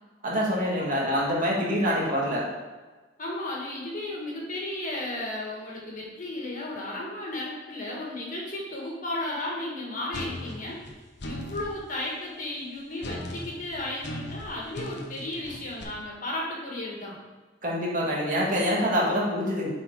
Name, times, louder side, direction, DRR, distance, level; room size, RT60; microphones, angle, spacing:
voice 1, 0.2-2.4 17.6-19.7, equal, 45° right, -5 dB, 2.0 m, -25 dB
voice 2, 1.8-2.1 3.2-10.8 11.3-17.2, left 1 dB, 45° left, -3 dB, 1.8 m, -34 dB
sound 1, 10.1-11.7 13.0-15.8, left 1 dB, 65° left, 1.0 m, -38 dB
7.4 x 4.5 x 4.7 m, 1.3 s
head